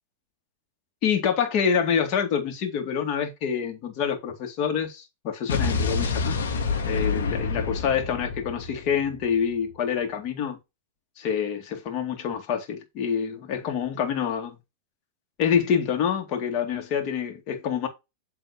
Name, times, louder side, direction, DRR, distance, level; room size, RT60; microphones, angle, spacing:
voice 1, 1.0-6.4 6.8-10.6 11.2-14.6 15.4-17.9, left 7 dB, 50° left, 2.2 m, -26 dB
Explosion, 5.5-9.6, left 4 dB, 80° left, 2.0 m, -28 dB
8.1 x 3.5 x 5.0 m
hypercardioid pair, 110°, 0 cm